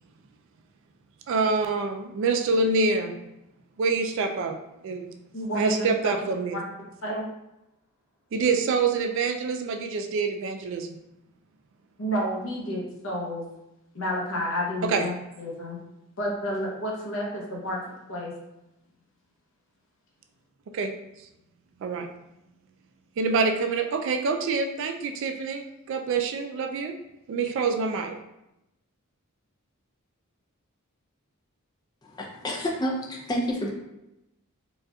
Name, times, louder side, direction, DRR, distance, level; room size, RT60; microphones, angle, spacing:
voice 1, 1.3-3.2 3.8-4.6 4.8-5.1 5.5-6.6 8.3-10.9 14.8-15.0 20.7-20.9 21.8-22.1 23.2-27.0 27.3-28.2, right 4 dB, 60° right, 5 dB, 0.3 m, -26 dB
voice 2, 5.3-6.1 7.0-7.3 12.0-13.4 13.9-15.1 15.4-15.8 16.2-17.8 18.1-18.3, equal, 60° left, -2 dB, 0.8 m, -30 dB
voice 3, 32.0-33.7, equal, 20° left, -2 dB, 0.4 m, -29 dB
4.0 x 2.3 x 2.3 m, 0.90 s
head